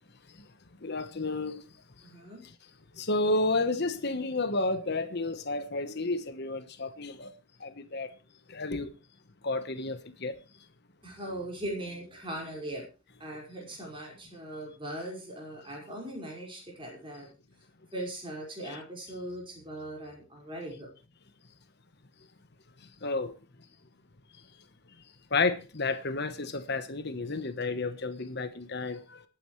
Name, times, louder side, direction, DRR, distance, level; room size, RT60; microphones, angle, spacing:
voice 1, 0.8-1.7 2.9-7.3 7.6-8.1 8.5-8.9 9.4-10.4 18.7-18.8 23.0-23.3 25.3-29.2, left 3 dB, 55° left, 1.2 m, -31 dB
voice 2, 2.0-2.4 11.0-12.8 13.2-17.3 17.9-20.9, right 1 dB, 25° right, 5.4 m, -39 dB
27.0 x 9.2 x 3.2 m
head